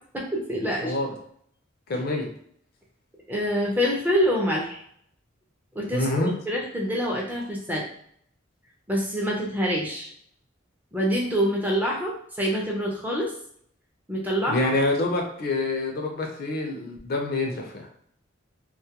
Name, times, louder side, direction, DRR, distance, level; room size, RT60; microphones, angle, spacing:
voice 1, 0.1-1.0 3.3-4.8 5.7-7.8 8.9-10.1 10.9-13.3 14.1-14.6, equal, 10° right, -3 dB, 0.4 m, -26 dB
voice 2, 1.9-2.3 5.9-6.3 14.5-17.9, left 2 dB, 50° left, 1 dB, 0.5 m, -26 dB
2.3 x 2.1 x 2.8 m, 0.65 s
head